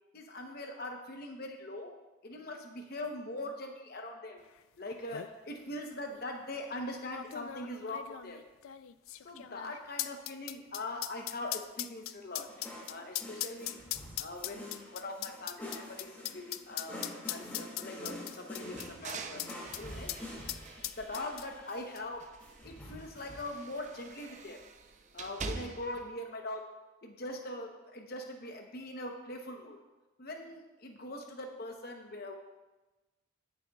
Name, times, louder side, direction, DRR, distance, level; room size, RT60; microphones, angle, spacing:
voice 1, 0.1-2.0 2.2-4.4 4.8-8.4 9.2-12.5 12.9-13.8 14.2-19.4 19.8-20.2 21.0-22.2 22.6-24.6 25.1-26.7 27.0-29.8 30.2-32.4, left 1 dB, 50° left, 3 dB, 0.9 m, -42 dB
sound 1, 4.6-4.7 4.9-5.3 6.1-6.2 7.1-19.8 20.1-20.2 20.5-21.7 22.0-22.1, left 14 dB, 90° left, 0.4 m, -39 dB
sound 2, 12.3-23.4, left 1 dB, 10° left, 2.1 m, -47 dB
sound 3, 18.6-21.8 22.1-26.1, right 4 dB, 35° right, 0.6 m, -46 dB
21.0 x 7.1 x 2.3 m, 1.1 s
head